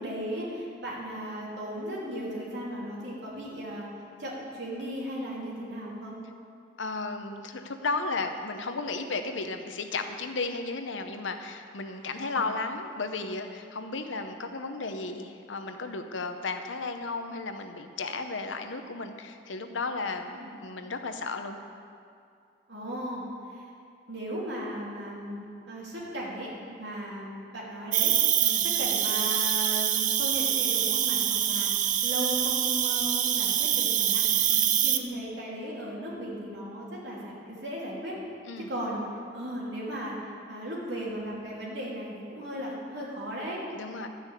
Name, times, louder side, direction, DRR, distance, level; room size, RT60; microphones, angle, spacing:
voice 1, 0.0-3.9 4.2-6.2 11.9-12.4 20.3-20.5 22.7-23.2 23.5-23.6 24.1-25.4 25.7-28.1 28.6-31.7 32.0-34.2 34.8-38.2 38.7-39.0 39.3-40.2 40.5-43.6, equal, 70° right, -5 dB, 3.2 m, -36 dB
voice 2, 6.8-20.3 20.6-21.6 28.4-28.7 34.5-34.7 38.5-38.7 43.7-44.1, left 3 dB, 85° left, 7 dB, 0.9 m, -34 dB
Cricket, 27.9-35.0, right 10 dB, 45° right, 0.5 m, -25 dB
12.5 x 6.1 x 8.2 m, 2.4 s
head